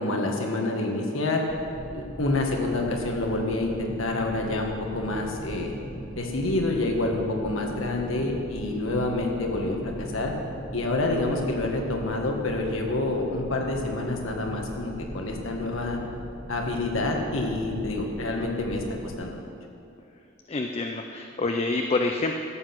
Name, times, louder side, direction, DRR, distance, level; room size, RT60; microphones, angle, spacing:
voice 1, 0.0-1.4 1.9-5.7 6.2-10.3 10.7-16.0 16.5-19.3, left 2 dB, 80° left, 1 dB, 1.7 m, -28 dB
sound 1, 1.5-19.1, equal, 15° left, 1.7 m, -40 dB
voice 2, 20.5-22.4, left 3 dB, 30° left, 4 dB, 0.5 m, -27 dB
14.0 x 7.8 x 6.0 m, 2.6 s
head